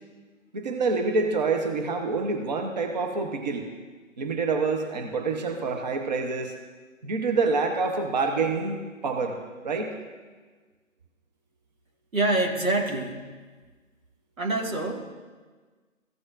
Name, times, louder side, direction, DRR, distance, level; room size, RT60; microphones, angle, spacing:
voice 1, 0.5-3.7 4.2-6.5 7.0-8.8 9.0-9.4 9.6-9.9, right 4 dB, 35° right, 4 dB, 0.8 m, -27 dB
voice 2, 12.1-13.3 14.4-15.1, right 2 dB, 85° right, 0 dB, 2.0 m, -26 dB
14.5 x 7.9 x 2.5 m, 1.4 s
figure-of-eight pair, 150°, 40 cm